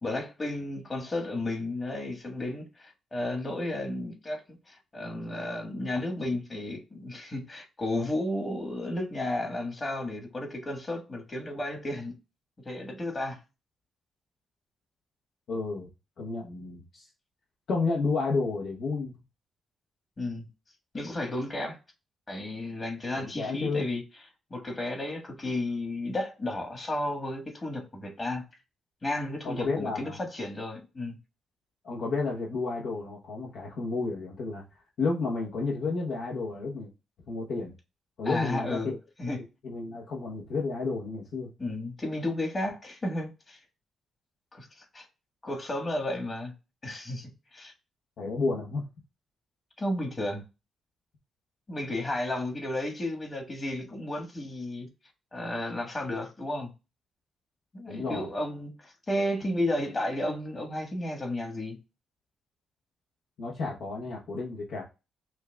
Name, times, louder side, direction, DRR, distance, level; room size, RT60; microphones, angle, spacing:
voice 1, 0.0-12.1 12.6-13.4 20.2-20.5 20.9-21.8 22.3-24.0 24.5-28.4 29.0-31.2 38.2-38.9 39.2-39.4 41.6-43.6 44.5-45.1 45.4-46.5 46.8-47.7 49.8-50.4 51.7-54.9 55.3-56.7 57.7-61.8, left 1 dB, 35° left, 1.5 m, -33 dB
voice 2, 15.5-15.9 16.2-17.1 17.7-19.1 23.2-23.9 29.4-30.2 31.8-34.6 35.0-36.9 37.3-37.7 38.2-39.0 39.6-41.5 48.2-48.9 57.9-58.3 63.4-64.8, left 3 dB, 75° left, 0.9 m, -31 dB
5.7 x 2.3 x 2.3 m
supercardioid pair, 60°, 0 cm